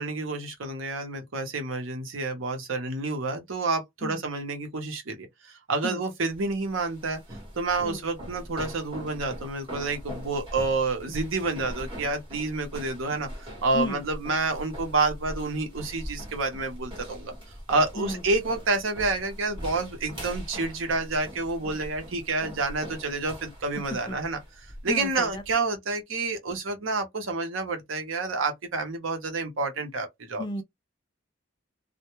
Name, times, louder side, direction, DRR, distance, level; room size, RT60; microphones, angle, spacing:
voice 1, 0.0-7.2 7.6-17.3 17.7-24.4 24.8-30.4, right 3 dB, 90° right, 0.8 m, -29 dB
sound 1, 6.3-25.5, equal, 25° right, 1.0 m, -41 dB
voice 2, 23.7-24.2 24.9-25.4 30.4-30.6, left 2 dB, 20° left, 0.3 m, -33 dB
2.1 x 2.1 x 2.9 m
head